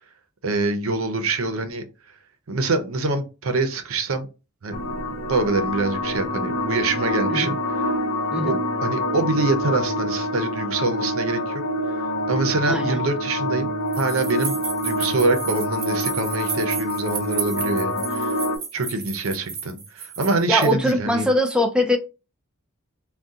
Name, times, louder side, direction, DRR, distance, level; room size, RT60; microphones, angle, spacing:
voice 1, 0.4-1.8 2.5-4.3 4.6-4.8 5.3-7.9 8.3-8.5 8.8-11.6 12.3-14.6 14.8-18.4 18.7-21.3, right 3 dB, 75° right, 0.7 m, -25 dB
sound 1, 4.7-18.6, left 1 dB, 65° left, 0.6 m, -26 dB
voice 2, 12.7-13.0 20.5-22.0, left 1 dB, 5° right, 0.3 m, -21 dB
sound 2, 13.9-20.9, right 6 dB, 45° right, 0.8 m, -33 dB
3.6 x 2.3 x 2.7 m
head